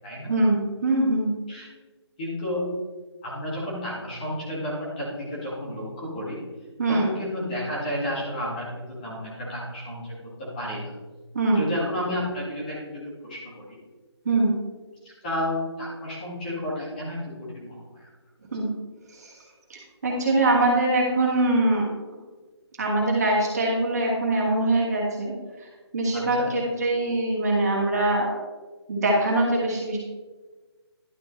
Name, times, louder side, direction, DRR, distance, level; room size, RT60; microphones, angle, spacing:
voice 1, 0.3-1.3 6.8-7.1 11.3-11.7 14.2-14.5 18.5-18.7 19.1-19.4 19.7-21.9 22.8-25.3 25.6-25.7 25.9-28.3 28.9-30.0, right 2 dB, 35° right, -3 dB, 2.2 m, -23 dB
voice 2, 2.2-2.6 3.2-6.4 6.9-10.1 10.4-10.9 11.6-13.8 15.0-17.8 26.1-26.5, left 1 dB, 20° left, -7 dB, 2.0 m, -31 dB
11.0 x 6.8 x 3.2 m, 1.3 s
hypercardioid pair, 175°, 15 cm